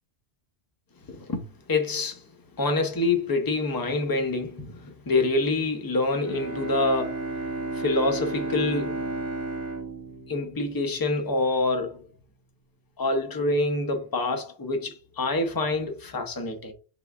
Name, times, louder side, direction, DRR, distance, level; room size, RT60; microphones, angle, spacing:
voice 1, 1.1-1.4 1.7-2.2 2.6-7.3 7.7-9.1 10.3-12.0 13.0-16.7, left 2 dB, 25° left, 0.5 m, -26 dB
Bowed string instrument, 6.2-11.2, right 2 dB, 20° right, 0.7 m, -33 dB
3.6 x 3.3 x 2.3 m
omnidirectional pair, 1.1 m